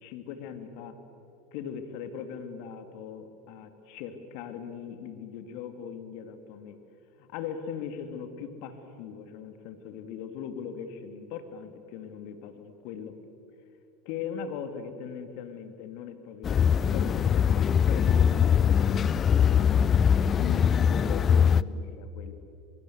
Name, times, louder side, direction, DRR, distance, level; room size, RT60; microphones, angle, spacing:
voice 1, 0.0-1.0 1.5-6.8 7.2-13.1 14.0-22.3, left 7 dB, 60° left, 8 dB, 2.5 m, -40 dB
sound 1, 16.4-21.6, left 8 dB, 35° left, 0.6 m, -22 dB
24.0 x 23.0 x 8.1 m, 2.8 s
hypercardioid pair, 80°, 0 cm